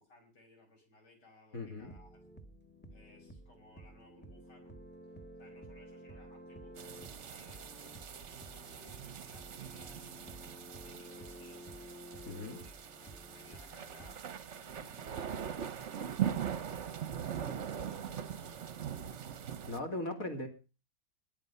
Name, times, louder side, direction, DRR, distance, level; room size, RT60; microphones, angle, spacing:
voice 1, 0.0-2.2 2.9-4.8 5.4-10.4 10.8-11.8 12.1-12.7 13.0-17.2 17.7-18.9, left 1 dB, 90° left, 4 dB, 5.6 m, -61 dB
voice 2, 1.5-1.9 12.3-12.6 19.7-20.5, left 2 dB, 55° left, 4 dB, 2.7 m, -38 dB
sound 1, 1.8-14.2, right 1 dB, 5° left, 1.2 m, -52 dB
sound 2, 6.8-19.8, right 9 dB, 50° right, 1.1 m, -41 dB
21.0 x 9.7 x 5.6 m, 0.35 s
omnidirectional pair, 1.8 m